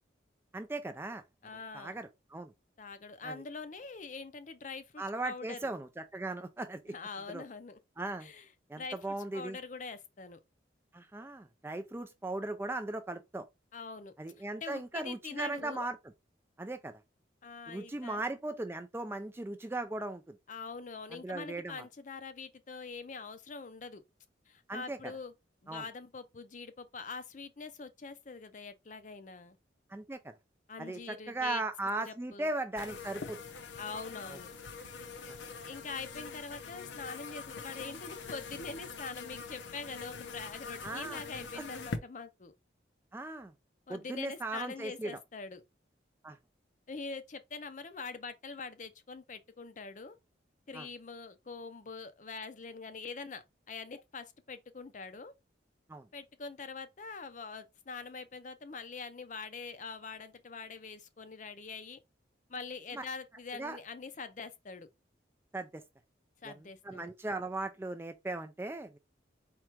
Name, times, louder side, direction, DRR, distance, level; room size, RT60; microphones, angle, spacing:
voice 1, 0.5-1.2 1.7-2.5 3.2-3.4 5.0-6.9 7.3-7.4 8.0-8.3 8.7-9.6 10.9-13.4 14.2-16.0 16.6-16.9 17.7-20.4 21.1-21.8 24.7-25.0 25.7-25.8 29.9-30.3 30.8-33.4 34.3-34.4 35.3-35.4 40.8-41.2 41.5-41.6 43.1-43.5 43.9-45.2 46.2-46.4 50.7-50.9 55.9-56.1 62.9-63.0 63.6-63.8 65.5-65.8 66.4-69.0, right 2 dB, 10° right, 0.3 m, -38 dB
voice 2, 1.4-2.0 2.8-5.7 6.9-7.8 8.2-8.5 8.7-10.4 13.7-15.9 17.4-18.2 20.5-24.0 24.5-25.3 25.6-29.6 30.7-31.6 32.1-32.5 33.8-34.5 35.6-42.5 43.9-45.6 46.9-50.2 50.7-55.3 56.1-62.0 62.5-64.9 66.4-67.1, left 4 dB, 40° left, 0.5 m, -44 dB
sound 1, 32.8-42.0, left 4 dB, 75° left, 0.7 m, -44 dB
4.5 x 2.4 x 4.4 m
head